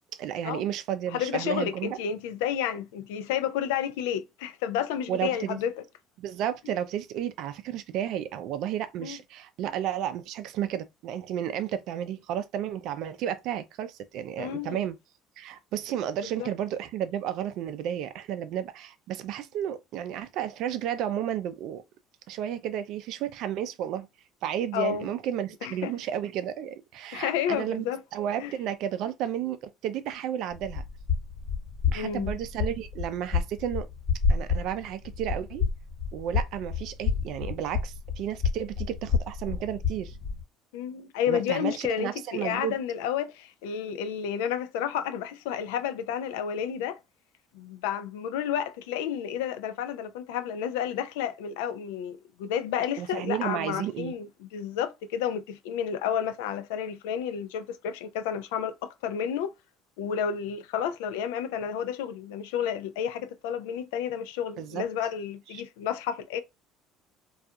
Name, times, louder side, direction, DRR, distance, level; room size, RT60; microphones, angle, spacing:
voice 1, 0.1-2.0 5.1-5.6 6.2-15.0 15.4-21.8 22.3-24.1 24.4-27.9 28.1-30.8 31.9-33.9 34.3-35.7 36.1-40.2 41.3-42.8 53.0-54.2 64.6-64.8 65.5-65.6, right 10 dB, 70° right, 0.4 m, -32 dB
voice 2, 1.1-5.8 9.0-9.2 14.4-14.8 16.4-16.5 24.7-25.1 25.6-25.9 27.1-28.0 28.4-28.5 31.9-32.3 40.7-47.0 47.5-59.5 60.0-66.4, left 9 dB, 85° left, 0.3 m, -31 dB
sound 1, 30.5-40.4, left 5 dB, 55° left, 1.1 m, -30 dB
2.3 x 2.3 x 2.7 m
supercardioid pair, 85°, 0 cm